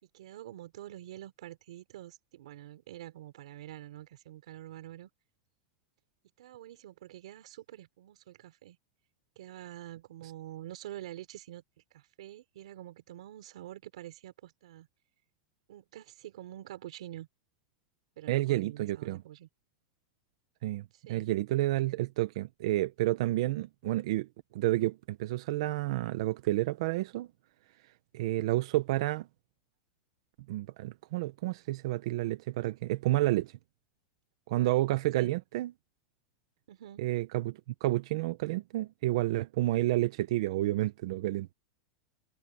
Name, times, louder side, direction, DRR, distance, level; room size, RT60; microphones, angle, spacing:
voice 1, 0.0-5.1 6.4-8.8 9.4-11.6 11.9-14.9 15.7-17.3 18.2-19.5 20.9-21.3 34.5-34.7 35.2-35.3 36.7-37.0, right 13 dB, 70° right, 3.5 m, -47 dB
voice 2, 18.3-19.2 20.6-27.3 28.1-29.3 30.5-33.5 34.5-35.7 37.0-41.5, right 16 dB, 50° right, 0.8 m, -30 dB
supercardioid pair, 175°, 4 cm